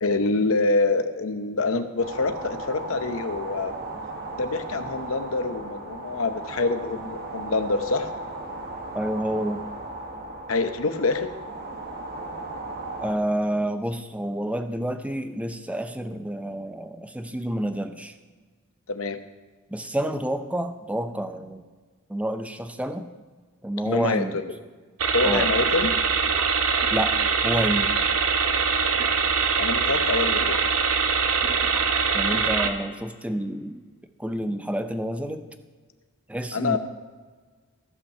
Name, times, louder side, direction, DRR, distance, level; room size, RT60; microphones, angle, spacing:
voice 1, 0.0-3.8 4.4-8.1 10.5-11.3 18.9-19.2 23.9-24.4 25.1-25.9 29.6-30.6 36.5-36.8, left 3 dB, 65° left, 8 dB, 0.8 m, -25 dB
sound 1, 2.0-13.1, right 2 dB, 45° right, 1.2 m, -36 dB
voice 2, 8.9-9.6 13.0-18.2 19.7-21.6 22.1-23.1 23.6-24.4 25.2-25.5 26.9-27.2 27.4-27.9 32.1-33.8 34.2-35.4 36.3-36.8, right 1 dB, 5° right, 7 dB, 0.6 m, -29 dB
sound 2, 25.0-32.7, right 5 dB, 85° right, 1.0 m, -23 dB
15.0 x 5.6 x 6.7 m, 1.4 s
head